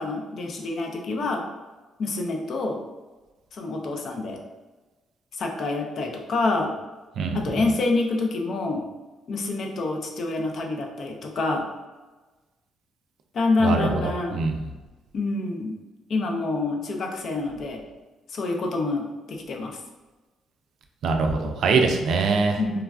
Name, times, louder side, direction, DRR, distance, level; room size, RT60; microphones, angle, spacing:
voice 1, 0.0-1.4 2.0-2.8 3.5-4.4 5.3-6.7 7.3-8.9 9.3-11.7 13.3-14.4 15.1-15.8 16.1-17.8 18.3-19.8 22.6-22.8, left 3 dB, 60° left, 2 dB, 0.5 m, -27 dB
voice 2, 13.6-14.0 14.3-14.5 21.0-22.6, right 4 dB, 70° right, 4 dB, 0.3 m, -22 dB
3.1 x 2.3 x 2.3 m, 1.2 s
cardioid pair, 90°, 0 cm